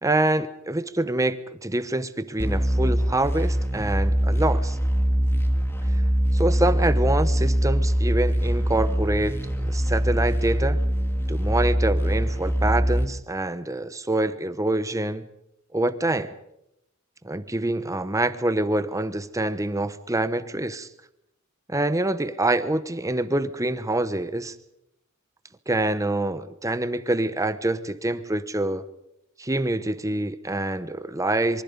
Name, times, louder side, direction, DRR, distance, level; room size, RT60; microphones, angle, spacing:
voice 1, 0.0-4.8 6.3-10.8 11.3-15.2 15.7-16.3 17.2-20.9 21.7-24.5 25.7-28.8 29.4-31.6, right 2 dB, 15° right, 13 dB, 1.0 m, -26 dB
sound 1, 2.4-13.1, equal, 10° left, 2.3 m, -23 dB
26.0 x 24.0 x 5.3 m, 0.80 s
head